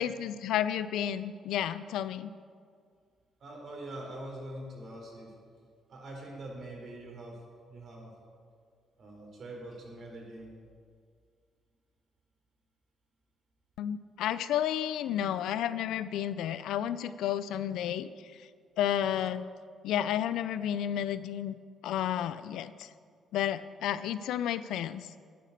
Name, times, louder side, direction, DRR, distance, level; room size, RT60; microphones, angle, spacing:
voice 1, 0.0-2.3 13.8-18.1 18.8-19.5 19.8-21.6 21.8-22.9 23.3-25.1, left 10 dB, 85° left, 14 dB, 0.5 m, -31 dB
voice 2, 3.4-5.3 5.9-7.4 7.7-8.1 9.0-10.6, right 1 dB, 60° right, -1 dB, 4.1 m, -43 dB
10.5 x 10.0 x 6.7 m, 2.1 s
cardioid pair, 90°, 0 cm